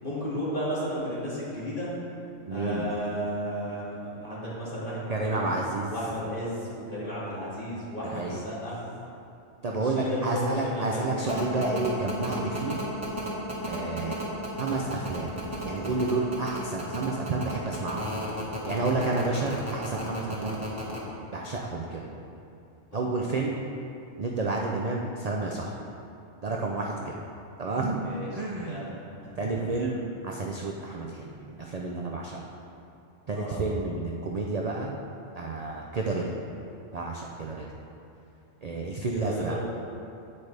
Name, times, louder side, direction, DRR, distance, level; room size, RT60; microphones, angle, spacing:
voice 1, 0.0-1.9 2.5-5.5 5.9-8.8 9.8-11.5 22.9-23.1 28.0-28.9 29.5-29.7 33.3-33.6 39.1-39.7, equal, 40° left, -9 dB, 2.5 m, -34 dB
voice 2, 2.5-2.9 5.1-5.9 8.0-8.4 9.6-12.8 13.7-14.2 14.6-15.3 15.6-18.1 18.7-20.6 21.3-22.1 22.9-23.6 24.2-25.7 26.4-27.2 27.6-28.0 28.3-28.8 29.4-32.4 33.3-34.9 35.4-36.4 36.9-37.7 38.6-39.5, right 3 dB, 50° right, -1 dB, 0.5 m, -30 dB
sound 1, 11.3-21.0, equal, 10° right, 1.4 m, -34 dB
8.6 x 8.4 x 3.4 m, 2.7 s
omnidirectional pair, 1.4 m